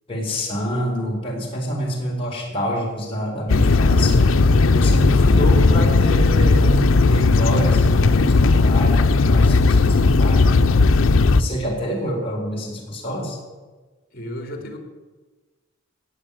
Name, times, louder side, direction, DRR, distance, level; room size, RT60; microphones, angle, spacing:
voice 1, 0.1-10.5 11.3-13.4, equal, 30° left, -2 dB, 4.5 m, -27 dB
sound 1, 3.5-11.4, left 3 dB, 85° left, 0.6 m, -16 dB
voice 2, 14.1-14.8, equal, 50° left, 4 dB, 3.3 m, -34 dB
17.5 x 7.4 x 9.0 m, 1.3 s
head